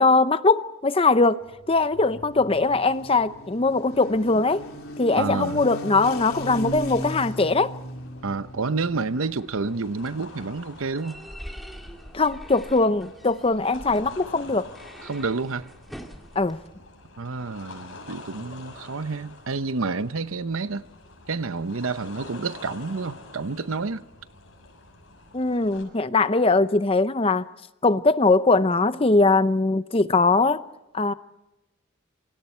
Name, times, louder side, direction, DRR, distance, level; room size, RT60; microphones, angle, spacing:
voice 1, 0.0-1.4 1.7-4.6 5.0-7.7 12.1-14.7 16.4-16.6 25.3-27.5 27.8-30.6 30.9-31.1, left 3 dB, 25° left, 0.7 m, -21 dB
sound 1, 1.4-9.1, equal, 90° left, 3.9 m, -37 dB
voice 2, 5.2-5.6 8.2-11.2 15.0-15.7 17.2-20.8 21.3-24.0, right 4 dB, 80° right, 0.8 m, -29 dB
sound 2, 6.0-25.8, left 2 dB, 75° left, 7.0 m, -46 dB
sound 3, 9.1-16.7, equal, ahead, 2.0 m, -45 dB
27.5 x 25.0 x 4.5 m
head